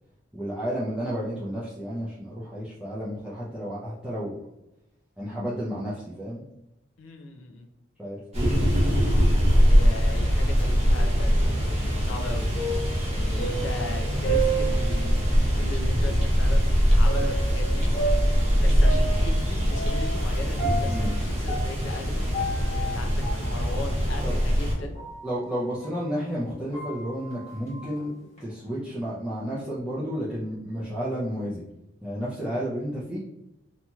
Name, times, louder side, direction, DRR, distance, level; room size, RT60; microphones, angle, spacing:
voice 1, 0.3-4.4 5.2-6.4 8.0-8.6 20.9-21.2 24.2-24.4 25.2-28.1 28.4-31.6 32.0-33.2, equal, 5° right, -9 dB, 0.5 m, -32 dB
voice 2, 7.0-7.7 9.7-11.7 12.0-12.5 13.1-17.9 18.6-22.3 22.7-25.0, left 2 dB, 65° left, 4 dB, 0.4 m, -38 dB
sound 1, 8.3-24.7, equal, 30° right, 0.8 m, -23 dB
sound 2, 10.9-15.5 16.0-16.1 17.1-26.1 26.5-28.4, right 4 dB, 35° left, 1.2 m, -34 dB
2.9 x 2.8 x 2.3 m, 0.89 s
head